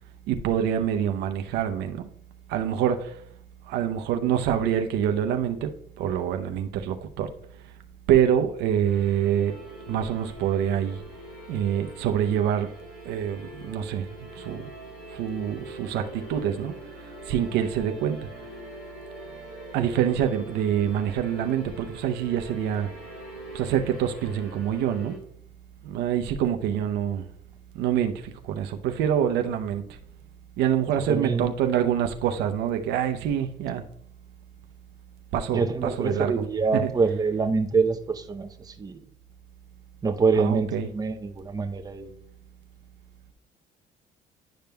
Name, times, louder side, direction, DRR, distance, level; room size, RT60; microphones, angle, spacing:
voice 1, 0.3-2.0 2.5-3.1 3.7-5.7 6.0-7.3 8.1-9.5 9.9-11.0 11.5-12.7 13.1-14.1 14.4-14.7 15.1-16.7 17.3-18.2 19.7-22.9 23.5-25.2 25.8-27.2 27.7-29.8 30.6-33.8 35.3-36.3 36.7-36.9 40.4-40.9, right 9 dB, 85° right, 0.6 m, -26 dB
sound 1, 8.8-25.2, right 1 dB, 90° left, 2.4 m, -43 dB
voice 2, 31.1-31.5 35.5-39.0 40.0-42.1, right 4 dB, 20° right, 0.7 m, -25 dB
10.5 x 5.1 x 2.2 m
cardioid pair, 110°, 17 cm